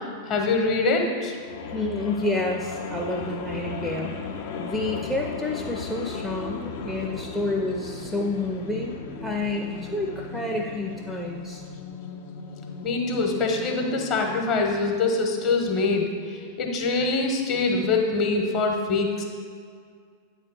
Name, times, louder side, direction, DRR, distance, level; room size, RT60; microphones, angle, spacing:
voice 1, 0.3-1.4 12.8-16.1 16.6-19.2, left 3 dB, 40° left, 2 dB, 0.9 m, -24 dB
sound 1, 1.4-14.7, left 5 dB, 55° left, 0.5 m, -36 dB
voice 2, 1.7-11.6, left 2 dB, ahead, 1 dB, 0.5 m, -29 dB
8.6 x 3.3 x 4.6 m, 2.1 s
figure-of-eight pair, 90°, 0 cm